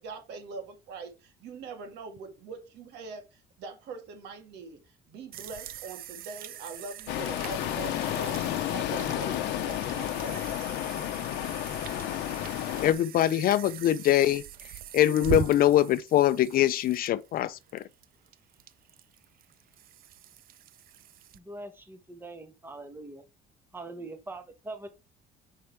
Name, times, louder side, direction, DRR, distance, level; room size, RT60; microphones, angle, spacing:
voice 1, 0.0-10.5, right 4 dB, 80° right, 2.2 m, -43 dB
sound 1, 5.3-21.4, right 12 dB, 60° right, 0.6 m, -42 dB
sound 2, 7.1-12.9, left 13 dB, 90° left, 0.8 m, -31 dB
voice 2, 12.8-14.4 14.9-17.8, left 12 dB, 60° left, 0.5 m, -23 dB
voice 3, 21.3-23.2 23.7-24.9, right 2 dB, 15° right, 1.4 m, -42 dB
5.6 x 5.1 x 4.6 m
cardioid pair, 110°, 17 cm